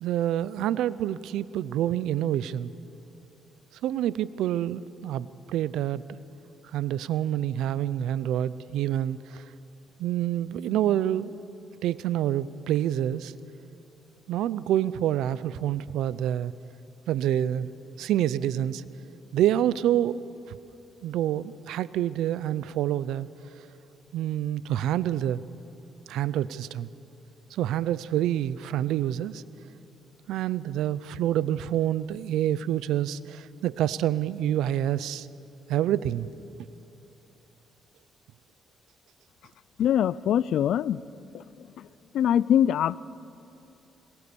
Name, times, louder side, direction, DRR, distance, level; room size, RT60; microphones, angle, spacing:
voice 1, 0.0-2.7 3.8-6.0 6.7-9.4 10.0-11.4 11.8-13.3 14.3-16.5 17.1-17.7 18.0-18.8 19.3-20.2 20.5-20.6 21.0-23.3 24.1-25.4 26.1-26.9 27.5-29.4 30.3-35.3 35.7-36.3, right 11 dB, 85° right, 17 dB, 0.6 m, -27 dB
voice 2, 39.8-41.0 41.3-41.4 41.8-41.9 42.1-43.0, left 10 dB, 75° left, 20 dB, 0.4 m, -23 dB
22.5 x 21.5 x 7.0 m, 2.8 s
cardioid pair, 90°, 0 cm